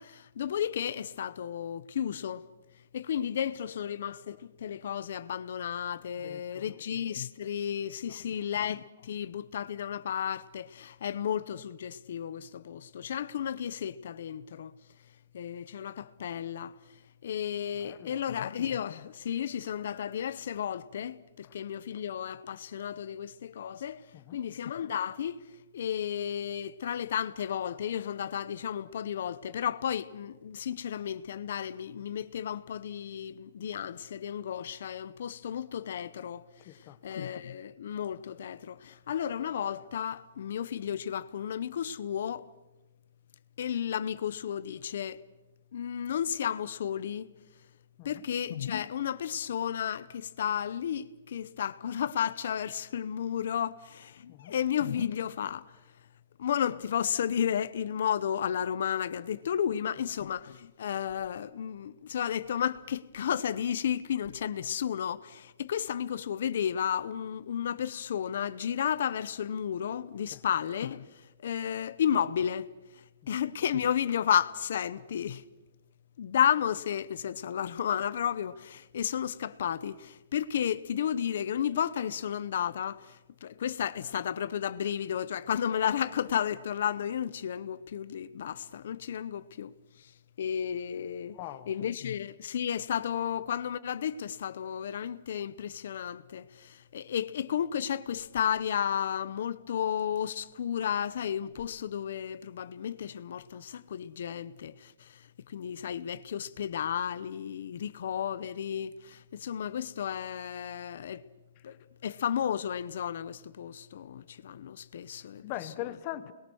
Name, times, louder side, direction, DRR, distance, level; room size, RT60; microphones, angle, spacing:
voice 1, 0.0-2.4 2.9-14.7 15.3-16.8 17.2-24.1 24.3-25.4 25.7-42.5 43.6-45.2 45.7-47.3 48.0-55.7 56.4-72.7 73.3-75.4 76.2-89.7 90.0-90.1 90.4-91.4 91.7-111.2 111.6-111.8 112.0-115.4, left 9 dB, 50° left, 0.8 m, -33 dB
voice 2, 6.2-6.7 17.8-18.2 24.1-24.4 36.6-37.0 48.0-48.3 54.3-54.6 70.3-70.4 73.2-73.3 91.3-91.7 115.4-116.3, left 14 dB, 25° left, 1.2 m, -41 dB
29.5 x 21.5 x 6.4 m
hypercardioid pair, 180°, 0 cm